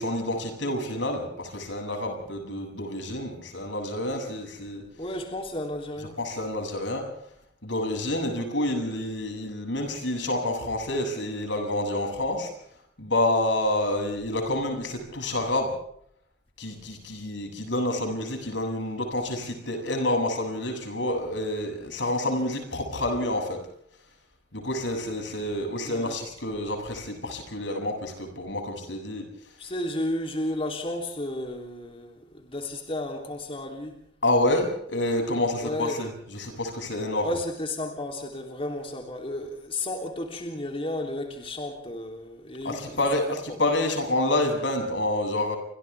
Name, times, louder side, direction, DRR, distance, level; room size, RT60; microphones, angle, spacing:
voice 1, 0.0-4.8 6.2-7.1 7.6-12.5 13.0-15.7 16.6-23.6 24.5-29.3 34.2-37.3 42.6-45.6, left 1 dB, 85° left, 4 dB, 7.6 m, -28 dB
voice 2, 5.0-6.2 25.8-26.2 29.6-34.0 35.6-36.0 37.2-43.0 43.5-43.6, left 1 dB, 30° left, 3 dB, 3.4 m, -33 dB
29.5 x 26.5 x 3.6 m, 0.69 s
head